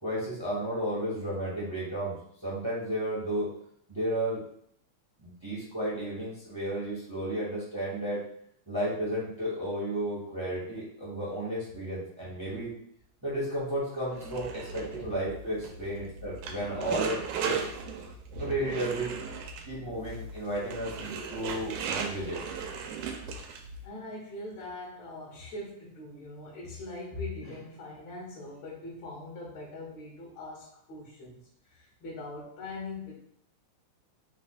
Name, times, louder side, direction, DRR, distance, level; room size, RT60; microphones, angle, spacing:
voice 1, 0.0-2.2 2.4-3.5 3.9-4.4 5.2-8.2 8.7-12.7 13.2-17.6 18.4-19.2 19.6-22.4, right 1 dB, 20° right, -7 dB, 0.6 m, -33 dB
sound 1, 14.1-23.8, right 5 dB, 90° right, 2.1 m, -37 dB
voice 2, 18.0-18.4 20.1-20.2 23.8-33.1, left 2 dB, 65° left, -6 dB, 2.4 m, -42 dB
5.5 x 2.4 x 3.9 m, 0.67 s
omnidirectional pair, 3.5 m